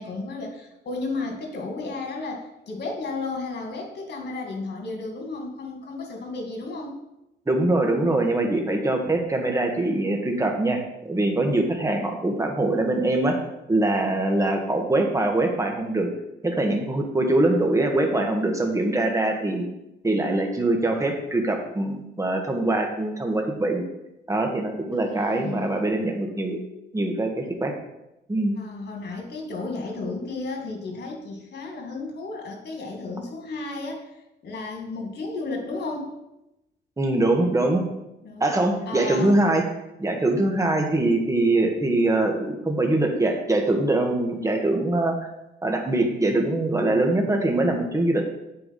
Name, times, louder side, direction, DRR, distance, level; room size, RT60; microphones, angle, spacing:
voice 1, 0.0-7.0 24.9-25.8 28.6-34.1 34.4-36.1 38.2-38.5 38.9-39.3, left 3 dB, 55° left, 2 dB, 2.2 m, -33 dB
voice 2, 7.5-13.4 13.7-16.1 16.4-19.6 20.0-23.8 24.3-26.6 26.9-27.7 28.3-28.6 37.0-37.8 38.4-39.6 40.0-45.3 45.6-48.2, right 2 dB, 15° right, 2 dB, 1.6 m, -23 dB
8.3 x 4.7 x 5.4 m, 0.90 s
cardioid pair, 90°, 20 cm